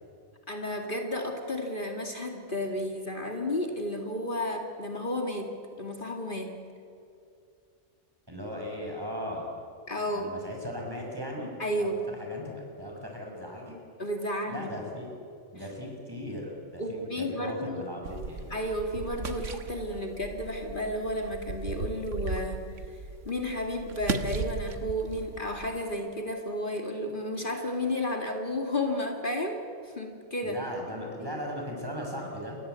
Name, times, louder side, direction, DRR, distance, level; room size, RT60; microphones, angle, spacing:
voice 1, 0.5-5.5 5.8-6.5 9.9-10.3 11.6-12.0 14.0-14.7 16.8-17.8 18.5-22.6 22.9-29.6 29.8-30.6 31.2-31.3, left 1 dB, 40° left, 2 dB, 2.4 m, -32 dB
voice 2, 8.3-9.5 10.1-11.5 11.8-11.9 12.2-13.8 14.5-15.1 15.5-18.5 30.4-32.6, equal, 20° right, 0 dB, 6.7 m, -38 dB
sound 1, 18.0-25.9, right 4 dB, 80° right, 1.7 m, -37 dB
29.0 x 23.5 x 8.3 m, 2.5 s
omnidirectional pair, 1.3 m